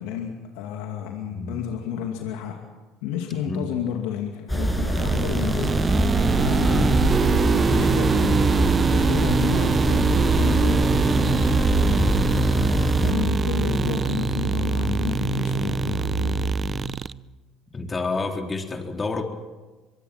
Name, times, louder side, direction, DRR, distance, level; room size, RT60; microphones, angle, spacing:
voice 1, 0.0-2.6 3.0-5.8 6.4-7.1 7.4-12.1 12.5-16.6, left 8 dB, 80° left, 2 dB, 2.5 m, -31 dB
voice 2, 1.3-1.6 3.5-3.7 6.6-6.9 13.0-13.3 17.7-19.2, left 3 dB, 25° left, 3 dB, 3.8 m, -29 dB
sound 1, 4.5-13.1, right 1 dB, ahead, 7.3 m, -24 dB
sound 2, 4.9-17.1, right 5 dB, 35° right, 0.7 m, -25 dB
sound 3, 6.4-17.1, right 3 dB, 70° right, 7.5 m, -27 dB
25.0 x 22.5 x 6.0 m, 1.3 s
supercardioid pair, 75°, 0 cm